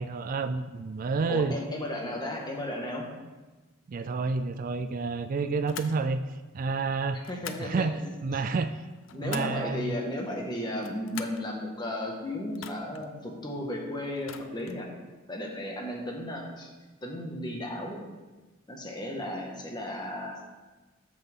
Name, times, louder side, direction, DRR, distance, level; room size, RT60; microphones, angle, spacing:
voice 1, 0.0-1.5 3.9-7.2 7.6-8.8 9.1-9.9, right 4 dB, 45° right, 10 dB, 0.4 m, -30 dB
voice 2, 1.3-3.0 7.1-8.4 9.1-14.9 15.3-16.7 17.0-18.0 18.7-20.4, left 1 dB, 20° left, 0 dB, 1.6 m, -35 dB
sound 1, 5.7-6.0 7.2-7.7 8.8-9.6 10.7-11.5 12.5-13.1 14.2-14.8, left 8 dB, 75° left, 0.6 m, -43 dB
13.0 x 5.9 x 3.7 m, 1.2 s
head